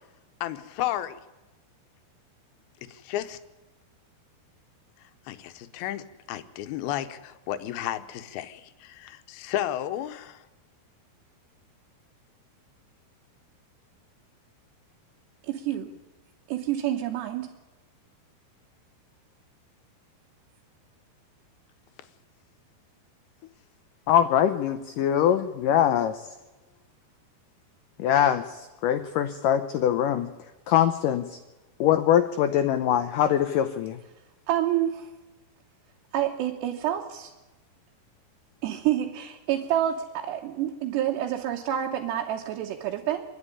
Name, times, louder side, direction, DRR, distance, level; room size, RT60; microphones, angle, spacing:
voice 1, 0.4-1.2 2.9-3.4 5.3-10.5, left 12 dB, 75° left, 10 dB, 2.6 m, -33 dB
voice 2, 15.5-15.9 16.5-17.5 34.5-35.1 36.1-37.3 38.6-43.2, right 11 dB, 80° right, 1 dB, 3.3 m, -28 dB
voice 3, 24.1-26.3 28.0-30.3 30.7-31.4 31.8-34.0, left 10 dB, 90° left, 9 dB, 1.8 m, -23 dB
26.0 x 11.0 x 9.8 m, 1.1 s
omnidirectional pair, 4.8 m